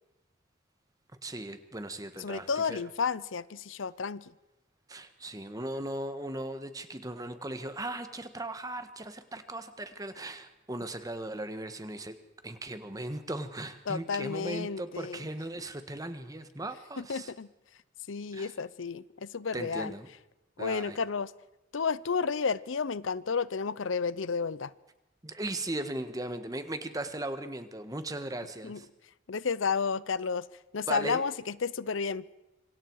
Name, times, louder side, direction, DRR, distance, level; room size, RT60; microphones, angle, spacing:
voice 1, 1.2-2.8 4.9-12.1 12.4-17.3 18.3-18.5 19.5-20.1 20.6-21.0 25.2-28.9 30.9-31.2, right 1 dB, 20° right, 9 dB, 1.4 m, -38 dB
voice 2, 2.2-4.3 13.9-15.3 17.0-17.5 18.1-19.9 20.6-21.3 21.7-24.7 28.6-28.8 29.3-30.4 30.7-32.2, left 5 dB, 85° left, 19 dB, 0.7 m, -32 dB
26.5 x 24.5 x 4.8 m, 0.95 s
head